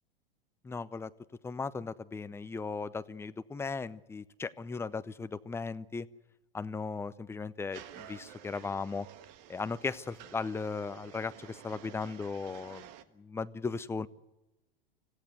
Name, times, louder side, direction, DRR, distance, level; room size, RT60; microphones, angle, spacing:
voice 1, 0.6-1.1 1.4-6.1 6.5-9.1 9.5-12.9 13.2-14.1, left 4 dB, 10° left, 14 dB, 0.7 m, -37 dB
sound 1, 7.7-13.0, right 11 dB, 45° right, 1.5 m, -51 dB
26.0 x 16.5 x 8.0 m, 1.0 s
figure-of-eight pair, 95°, 29 cm